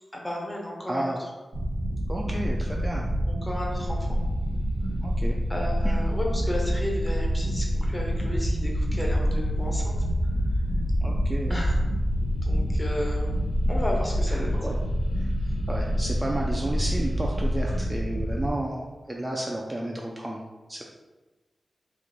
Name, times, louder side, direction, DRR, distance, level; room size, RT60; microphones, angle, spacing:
voice 1, 0.1-1.2 3.3-4.2 5.5-10.0 11.5-11.8 12.3-13.3 13.7-14.6, left 1 dB, 15° left, -1 dB, 0.8 m, -33 dB
voice 2, 0.9-1.2 2.1-3.1 5.0-5.4 5.8-6.0 11.0-11.6 14.3-14.8 15.1-15.3 15.7-20.4 20.7-20.8, right 1 dB, 15° right, -2 dB, 0.3 m, -32 dB
sound 1, 1.5-18.5, right 1 dB, 75° right, 0.8 m, -29 dB
sound 2, 3.8-17.8, left 1 dB, 80° left, 0.3 m, -29 dB
3.0 x 2.5 x 3.9 m, 1.2 s
wide cardioid pair, 100°, 0 cm